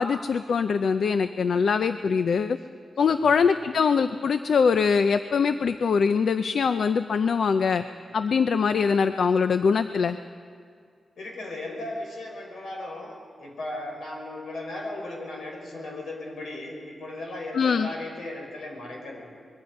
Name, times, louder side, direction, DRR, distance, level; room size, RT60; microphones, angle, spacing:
voice 1, 0.0-2.6 3.0-7.8 8.1-10.2 17.5-17.9, left 5 dB, 70° left, 10 dB, 0.5 m, -23 dB
voice 2, 11.2-19.2, left 2 dB, 90° left, 0 dB, 5.2 m, -37 dB
24.5 x 22.0 x 5.3 m, 2.2 s
wide cardioid pair, 140°, 0 cm